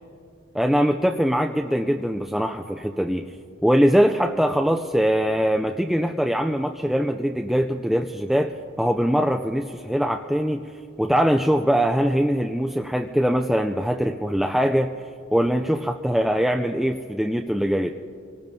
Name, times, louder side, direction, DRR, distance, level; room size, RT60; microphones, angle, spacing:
voice 1, 0.5-3.3 3.6-10.6 11.0-14.9 15.3-17.9, equal, ahead, 4 dB, 0.3 m, -22 dB
26.5 x 18.5 x 2.7 m, 2.5 s
head